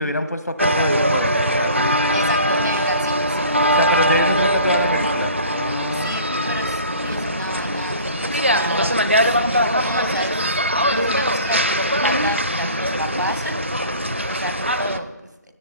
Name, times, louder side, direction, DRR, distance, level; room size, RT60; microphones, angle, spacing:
voice 1, 0.0-2.2 3.7-6.3, left 1 dB, 65° left, 10 dB, 1.2 m, -25 dB
sound 1, 0.6-15.0, equal, 45° right, 0.6 m, -21 dB
voice 2, 2.1-3.5 5.9-13.5 14.2-15.1, equal, 85° right, 9 dB, 1.7 m, -30 dB
17.5 x 8.2 x 4.2 m, 1.0 s
figure-of-eight pair, 180°, 9 cm